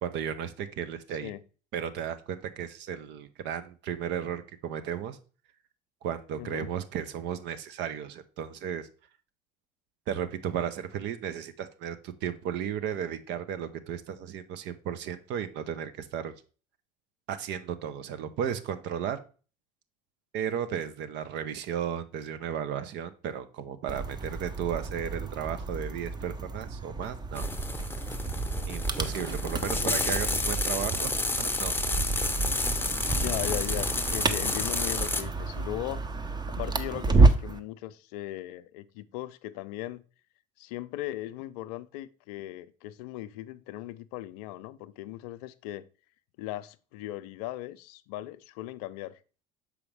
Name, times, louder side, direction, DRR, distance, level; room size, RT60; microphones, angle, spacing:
voice 1, 0.0-1.3 1.7-5.2 6.0-8.9 10.1-16.3 17.3-19.2 20.3-27.4 28.7-31.7, right 8 dB, 60° right, 0.8 m, -34 dB
voice 2, 6.4-6.7 29.8-30.0 33.2-36.0 36.5-40.0 40.6-45.8 46.4-49.2, left 15 dB, 75° left, 0.4 m, -38 dB
sound 1, 23.9-37.6, right 3 dB, 20° right, 0.7 m, -29 dB
sound 2, 27.3-35.2, left 3 dB, 10° left, 0.7 m, -31 dB
6.1 x 4.9 x 3.3 m
hypercardioid pair, 70°, 20 cm